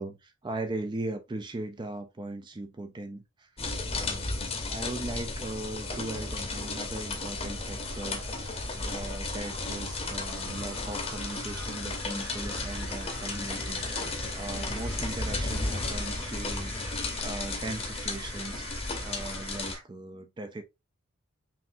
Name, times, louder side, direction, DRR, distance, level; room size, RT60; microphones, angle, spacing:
voice 1, 0.0-20.6, right 2 dB, 20° right, 0.3 m, -39 dB
sound 1, 3.6-19.8, left 3 dB, 30° left, 0.8 m, -34 dB
sound 2, 5.5-19.8, right 3 dB, 85° right, 1.3 m, -45 dB
5.6 x 2.6 x 2.5 m
head